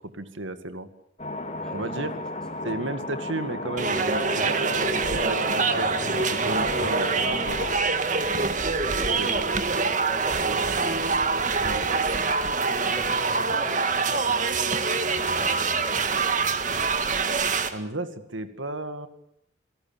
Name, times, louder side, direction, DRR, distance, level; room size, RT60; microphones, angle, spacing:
voice 1, 0.1-0.9 1.7-2.1 2.6-7.9 9.0-9.6 11.6-11.8 17.7-19.1, right 2 dB, 85° right, 10 dB, 2.1 m, -34 dB
sound 1, 1.2-7.7, left 2 dB, 35° left, 3.0 m, -34 dB
voice 2, 1.6-2.1 7.3-7.5 8.8-9.8 10.1-12.2 12.6-16.2, equal, 5° left, 5 dB, 2.8 m, -43 dB
sound 2, 3.8-17.7, right 4 dB, 40° right, 1.9 m, -25 dB
28.5 x 18.0 x 8.9 m, 0.75 s
head